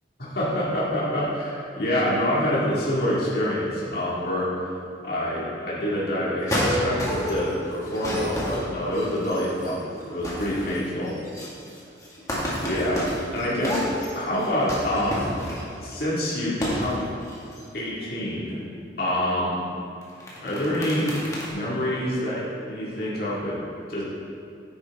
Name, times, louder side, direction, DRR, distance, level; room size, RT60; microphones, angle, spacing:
voice 1, 0.2-4.5 5.0-9.8 10.0-11.2 12.6-13.8 14.1-15.3 15.8-17.0 17.7-18.6 19.0-19.6 20.4-21.1 21.5-23.6 23.9-24.0, equal, 55° left, -7 dB, 2.1 m, -26 dB
sound 1, 6.5-7.5 7.8-9.7 10.0-10.8 11.0-15.9 16.5-16.9 17.2-17.6 20.0-21.5, equal, 20° left, 1.9 m, -30 dB
10.5 x 9.6 x 3.6 m, 2.5 s
head